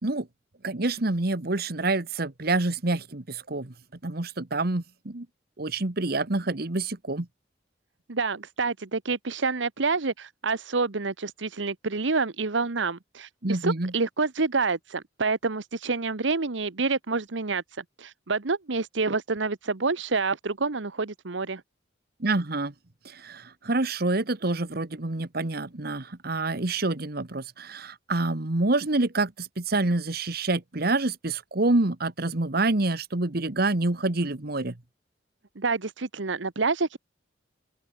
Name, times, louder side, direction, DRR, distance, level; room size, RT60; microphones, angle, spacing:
voice 1, 0.6-3.7 4.0-5.3 5.6-7.3 13.4-13.9 22.2-22.7 23.0-34.7, right 2 dB, 55° right, 1.4 m, -27 dB
voice 2, 8.1-17.6 18.0-21.6 35.6-37.0, right 4 dB, 80° right, 1.1 m, -28 dB
open air
head